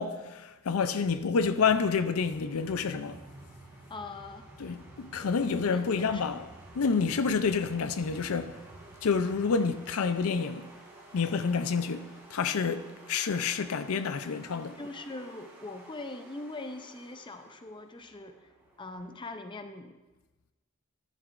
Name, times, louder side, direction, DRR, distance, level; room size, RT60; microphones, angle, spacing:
voice 1, 0.0-3.2 4.6-6.4 6.8-8.6 9.0-10.7 11.1-12.0 12.3-14.7, left 5 dB, 70° left, 0.5 m, -28 dB
Train, 1.1-10.0, right 1 dB, 25° right, 1.5 m, -52 dB
sound 1, 1.4-19.2, right 2 dB, 10° right, 1.7 m, -54 dB
voice 2, 3.9-4.5 5.7-6.3 14.8-18.4 18.8-20.0, left 2 dB, 20° left, 0.5 m, -42 dB
11.5 x 11.0 x 2.5 m
head